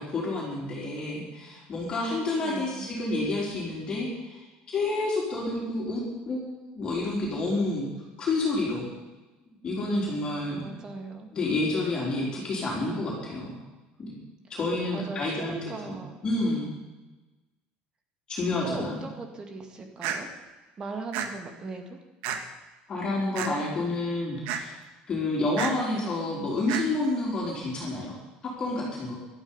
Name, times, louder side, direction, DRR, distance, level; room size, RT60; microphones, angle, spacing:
voice 1, 0.0-4.4 4.7-7.9 8.2-8.9 9.6-10.7 11.3-13.5 14.1-14.2 14.5-16.0 16.2-16.7 18.3-19.1 22.9-24.8 25.1-28.2 28.6-29.2, left 2 dB, 25° left, -4 dB, 4.0 m, -29 dB
voice 2, 2.4-2.9 10.6-11.3 14.9-16.2 18.6-20.3 20.8-22.0, right 3 dB, 25° right, 5 dB, 2.2 m, -38 dB
sound 1, 20.0-20.2 21.1-21.3 22.2-22.4 23.4-23.5 24.5-24.6 25.6-25.7 26.7-26.8, right 8 dB, 70° right, 1.7 m, -30 dB
16.5 x 12.5 x 5.5 m, 1.1 s
cardioid pair, 160°, 3 cm